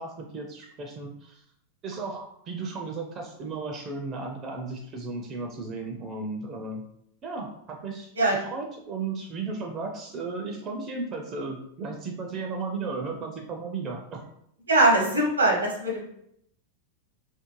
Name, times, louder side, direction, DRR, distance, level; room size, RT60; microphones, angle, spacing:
voice 1, 0.0-1.4 1.8-6.8 7.2-14.2, right 3 dB, 30° right, 1 dB, 0.4 m, -35 dB
voice 2, 14.7-16.0, right 2 dB, 75° right, -1 dB, 0.7 m, -21 dB
2.5 x 2.0 x 3.0 m, 0.73 s
figure-of-eight pair, 90°, 0 cm